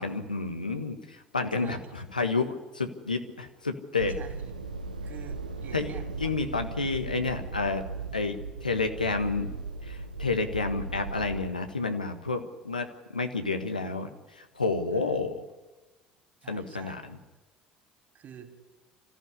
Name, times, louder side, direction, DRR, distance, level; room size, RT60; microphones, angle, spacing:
voice 1, 0.0-4.1 5.7-5.9 6.2-7.8 8.1-9.5 9.8-15.4 16.5-17.2, left 3 dB, 85° left, 6 dB, 1.5 m, -30 dB
voice 2, 1.5-1.9 4.1-4.5 5.0-6.4 14.9-15.2 16.4-17.0 18.1-18.6, right 7 dB, 40° right, 5 dB, 4.4 m, -48 dB
sound 1, 4.0-11.4, right 3 dB, 80° right, 1.2 m, -37 dB
25.5 x 15.0 x 9.9 m, 1.2 s
figure-of-eight pair, 60°, 4 cm